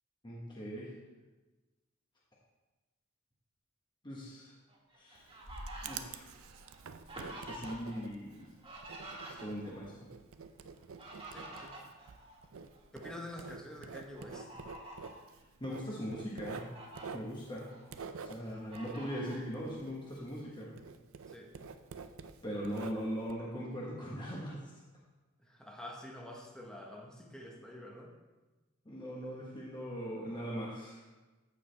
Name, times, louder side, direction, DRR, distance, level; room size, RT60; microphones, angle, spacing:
voice 1, 0.2-0.9 4.0-4.5 4.9-5.3 5.8-6.3 7.5-8.5 9.4-10.0 15.6-16.7 17.1-17.7 18.2-20.7 22.4-24.6 28.8-31.0, equal, 25° left, -5 dB, 1.3 m, -40 dB
Fowl, 4.7-8.0 8.3-9.8 10.7-12.8 13.3-13.5 14.1-15.2 15.8-15.9 16.3-17.1 17.6-18.3 18.7-19.4, right 1 dB, 25° right, 1.9 m, -48 dB
Writing, 5.1-20.5 20.8-23.3, right 5 dB, 90° right, 0.5 m, -48 dB
voice 2, 11.3-11.8 12.9-14.5 21.3-21.5 25.4-28.1, left 1 dB, 5° left, -1 dB, 1.1 m, -47 dB
14.5 x 4.8 x 3.4 m, 1.2 s
head